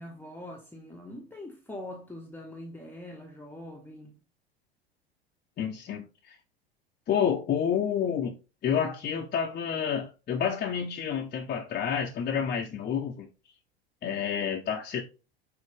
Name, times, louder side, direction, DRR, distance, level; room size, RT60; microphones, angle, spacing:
voice 1, 0.0-4.2, left 1 dB, 5° left, 1.2 m, -43 dB
voice 2, 5.6-6.4 7.1-8.4 8.6-13.3 14.0-15.0, left 8 dB, 30° left, 1.0 m, -29 dB
6.5 x 4.3 x 3.6 m
figure-of-eight pair, 75°, 31 cm